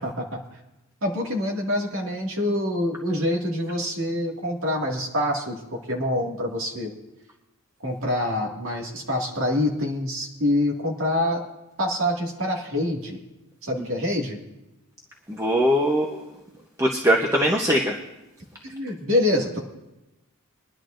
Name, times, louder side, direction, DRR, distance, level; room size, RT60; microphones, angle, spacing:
voice 1, 0.0-0.4 1.0-6.9 7.8-11.4 11.8-13.2 13.6-14.4 18.6-19.6, left 1 dB, 70° right, -1 dB, 2.0 m, -26 dB
voice 2, 15.3-16.2 16.8-18.0, equal, 15° right, 0 dB, 0.8 m, -21 dB
23.5 x 11.0 x 2.5 m, 0.97 s
head